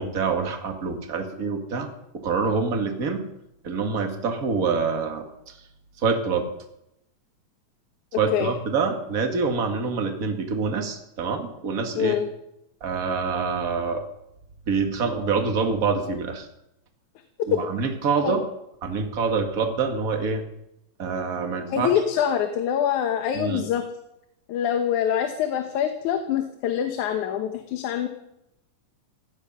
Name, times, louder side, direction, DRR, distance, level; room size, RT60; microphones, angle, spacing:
voice 1, 0.0-1.9 2.1-3.3 3.6-5.6 6.0-6.5 8.2-12.2 12.8-14.1 14.7-16.5 17.5-18.4 18.8-20.4 21.0-21.9 23.3-23.7, right 5 dB, 35° right, 4 dB, 1.9 m, -26 dB
voice 2, 12.0-12.3 18.2-18.4 21.7-23.8 24.5-28.1, left 9 dB, 85° left, 6 dB, 2.5 m, -25 dB
17.5 x 12.0 x 5.5 m, 0.84 s
omnidirectional pair, 3.4 m